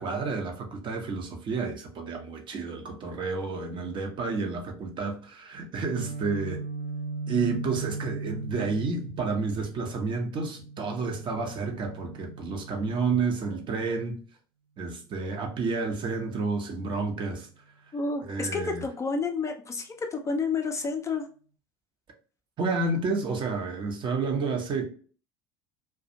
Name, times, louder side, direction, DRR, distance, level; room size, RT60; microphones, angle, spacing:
voice 1, 0.0-6.6 7.3-14.2 14.8-17.5 18.2-18.9 22.6-24.9, right 4 dB, 40° right, 0.7 m, -30 dB
Guitar, 6.0-13.8, right 3 dB, 70° right, 0.4 m, -38 dB
voice 2, 17.9-21.3, left 4 dB, 25° left, 0.4 m, -30 dB
2.4 x 2.2 x 2.7 m
hypercardioid pair, 70°, 12 cm